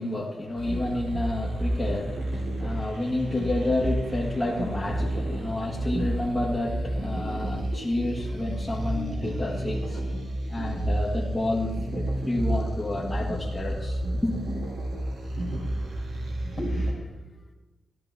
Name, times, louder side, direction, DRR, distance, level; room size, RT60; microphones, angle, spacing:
voice 1, 0.0-10.0 10.5-14.4, left 2 dB, 15° left, 1.7 m, -30 dB
sound 1, 0.6-16.9, right 1 dB, 75° right, 2.9 m, -30 dB
voice 2, 15.3-15.7 16.5-17.5, left 1 dB, 35° left, 2.5 m, -41 dB
13.5 x 12.5 x 3.5 m
cardioid pair, 100°, 0 cm